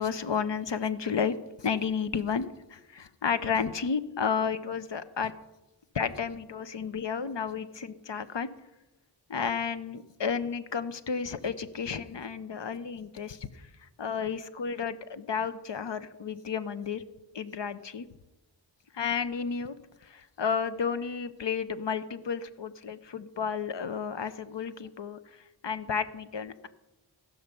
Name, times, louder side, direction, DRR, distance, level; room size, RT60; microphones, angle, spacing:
voice 1, 0.0-5.3 5.9-8.5 9.3-13.7 14.0-17.0 17.3-18.1 18.9-19.8 20.0-25.2 25.6-26.7, left 6 dB, 60° left, 12 dB, 0.8 m, -32 dB
15.0 x 6.0 x 6.8 m, 1.0 s
wide cardioid pair, 45°, 49 cm